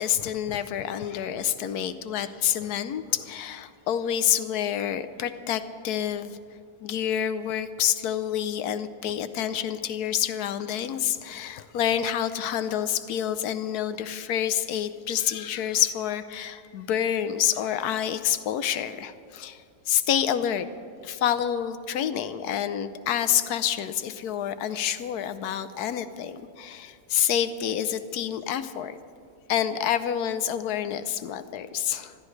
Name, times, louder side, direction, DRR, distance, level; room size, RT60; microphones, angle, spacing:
voice 1, 0.0-6.4 6.8-19.6 19.9-20.7 21.0-29.0 29.5-32.2, left 10 dB, 85° left, 12 dB, 1.2 m, -28 dB
26.0 x 13.5 x 3.2 m, 2.3 s
omnidirectional pair, 1.6 m